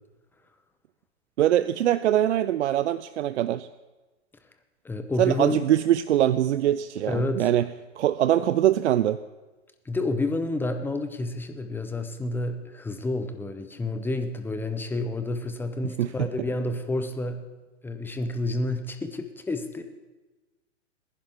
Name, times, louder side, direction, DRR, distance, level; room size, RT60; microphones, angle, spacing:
voice 1, 1.4-3.7 5.2-7.7 8.0-9.2 16.0-16.1, right 12 dB, 70° right, 15 dB, 0.5 m, -23 dB
voice 2, 4.8-5.6 7.1-7.6 9.9-17.4 17.8-19.8, left 2 dB, 5° left, 8 dB, 0.7 m, -29 dB
19.5 x 10.5 x 3.6 m, 1.2 s
hypercardioid pair, 120°, 37 cm